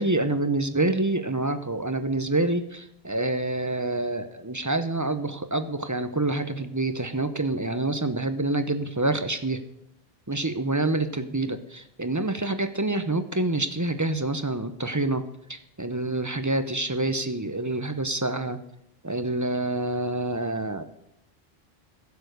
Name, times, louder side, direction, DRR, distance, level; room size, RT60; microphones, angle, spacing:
voice 1, 0.0-9.6 10.3-15.2 15.5-18.6 19.0-20.8, right 2 dB, 20° right, 9 dB, 0.7 m, -27 dB
15.5 x 7.0 x 6.6 m, 0.78 s
omnidirectional pair, 1.1 m